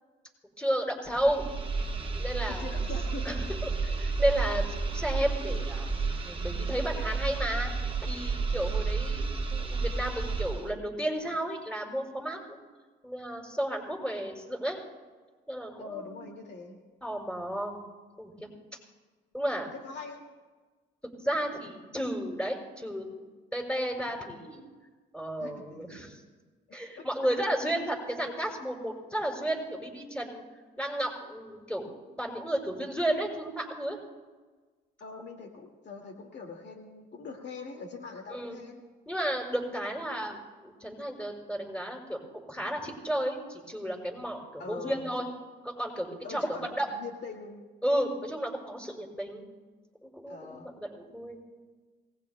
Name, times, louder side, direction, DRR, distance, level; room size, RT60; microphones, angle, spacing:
voice 1, 0.6-1.4 2.2-2.8 3.2-5.9 6.2-7.7 8.0-12.6 13.0-14.8 15.5-16.3 17.0-17.8 18.2-18.5 19.3-19.7 21.2-23.1 23.5-24.7 25.1-26.2 26.7-30.4 30.8-34.0 38.3-38.6 39.1-40.4 40.6-42.2 42.5-45.3 45.6-46.9 47.8-49.5 50.0-51.4, right 1 dB, 5° left, 1 dB, 5.8 m, -33 dB
sound 1, 1.1-10.7, right 4 dB, 25° right, 1.4 m, -31 dB
voice 2, 2.5-3.3 15.8-16.8 19.7-20.2 25.4-25.8 27.0-27.1 35.0-38.8 44.6-45.1 46.2-47.6 50.3-50.7, left 4 dB, 60° left, 2 dB, 2.3 m, -42 dB
28.0 x 19.5 x 2.3 m, 1.3 s
cardioid pair, 90°, 20 cm